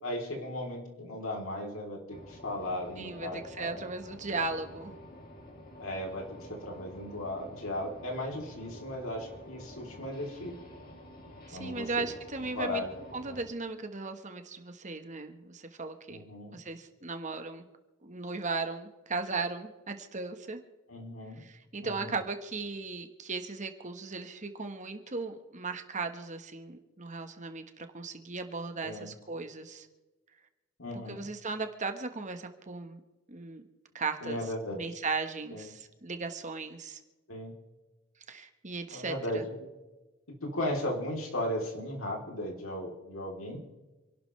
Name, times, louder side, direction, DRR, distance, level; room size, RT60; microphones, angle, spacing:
voice 1, 0.0-3.8 5.8-10.6 11.5-12.1 12.5-12.9 13.3-13.4 16.1-16.6 20.9-21.4 21.8-22.2 28.8-29.1 30.8-31.2 34.2-34.8 35.5-35.7 37.3-37.5 38.9-39.7 40.4-43.6, left 1 dB, 80° left, 0 dB, 3.6 m, -36 dB
sound 1, 2.1-13.5, left 1 dB, 45° left, 3.0 m, -49 dB
voice 2, 3.0-4.9 11.5-12.8 13.1-16.2 16.5-17.7 18.0-20.6 21.4-29.9 31.1-33.0 33.3-33.6 33.9-34.4 34.7-37.0 38.3-39.4, right 3 dB, 35° right, 7 dB, 1.4 m, -37 dB
28.0 x 12.0 x 3.3 m, 1.1 s
head